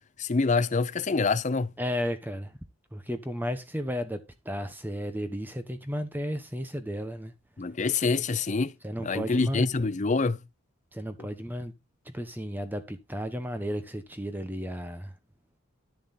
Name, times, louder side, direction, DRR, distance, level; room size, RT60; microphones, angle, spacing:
voice 1, 0.2-1.7 7.6-8.7 9.0-10.4 11.2-11.3, left 4 dB, 35° left, 0.5 m, -26 dB
voice 2, 1.8-2.5 2.9-4.2 4.4-7.3 8.8-9.7 10.9-11.7 12.1-15.1, equal, 10° right, 1.0 m, -33 dB
11.0 x 7.1 x 4.1 m
head